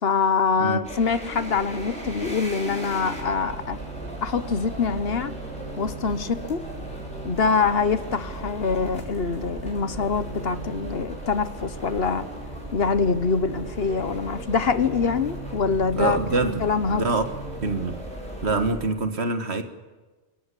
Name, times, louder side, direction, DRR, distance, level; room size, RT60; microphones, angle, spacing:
voice 1, 0.0-3.8 4.2-5.3 5.8-6.6 7.2-12.3 12.7-16.2 16.6-17.0, left 5 dB, 65° left, 12 dB, 1.3 m, -24 dB
sound 1, 0.8-18.7, right 1 dB, 5° left, 5.9 m, -38 dB
sound 2, 1.2-17.7, right 3 dB, 20° right, 2.6 m, -42 dB
sound 3, 7.3-18.9, equal, 30° left, 1.7 m, -45 dB
voice 2, 16.0-17.2 17.6-18.0 18.4-19.6, right 3 dB, 75° right, 8 dB, 1.9 m, -25 dB
28.0 x 15.0 x 8.4 m, 1.3 s
omnidirectional pair, 1.1 m